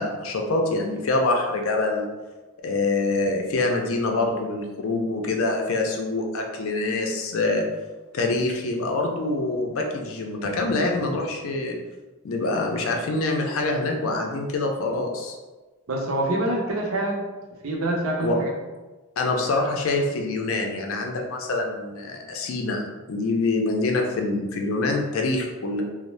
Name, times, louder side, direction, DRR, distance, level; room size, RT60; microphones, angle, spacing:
voice 1, 0.0-2.1 2.6-7.6 8.1-11.7 12.2-15.4 18.2-18.3 19.2-22.8 23.1-25.8, left 2 dB, 70° left, 2 dB, 0.5 m, -25 dB
voice 2, 15.9-17.2 17.6-18.5, right 1 dB, 75° right, 0 dB, 0.6 m, -25 dB
2.6 x 2.0 x 3.1 m, 1.2 s
head